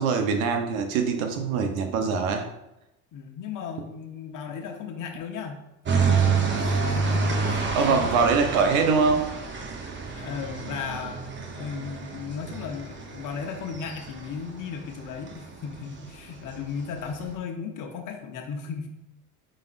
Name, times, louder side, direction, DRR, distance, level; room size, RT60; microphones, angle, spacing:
voice 1, 0.0-2.5 7.7-9.3, right 5 dB, 85° right, 5 dB, 0.9 m, -23 dB
voice 2, 3.1-5.6 5.9-8.1 10.1-18.9, left 6 dB, 50° left, 3 dB, 1.0 m, -36 dB
sound 1, 5.9-17.3, right 5 dB, 30° right, 0.8 m, -29 dB
4.9 x 4.1 x 2.5 m, 0.90 s
supercardioid pair, 90°, 41 cm